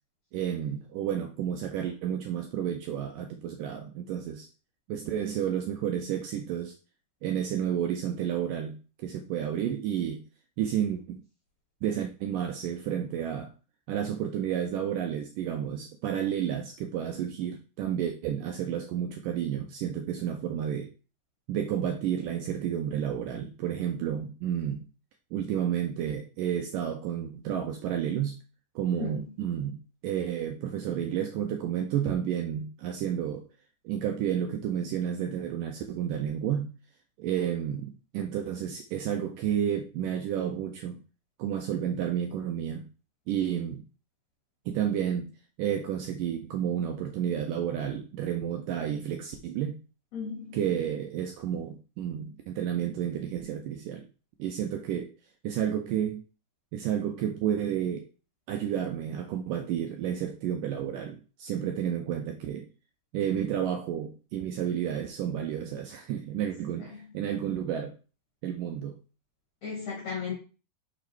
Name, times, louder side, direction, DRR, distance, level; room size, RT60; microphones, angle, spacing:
voice 1, 0.3-4.5 4.9-6.8 7.2-10.2 10.6-11.2 11.8-13.5 13.9-20.9 21.5-24.9 25.3-28.4 28.8-33.5 33.9-36.7 37.2-41.0 41.4-42.9 43.3-43.8 44.7-45.3 45.6-49.8 50.5-54.1 54.4-55.1 55.4-56.2 56.7-58.1 58.5-62.7 63.1-67.9 68.4-69.0, right 9 dB, 80° right, 4 dB, 1.9 m, -31 dB
voice 2, 50.1-50.5 69.6-70.3, left 5 dB, 55° left, -2 dB, 2.3 m, -34 dB
5.9 x 4.9 x 4.5 m, 0.34 s
omnidirectional pair, 4.7 m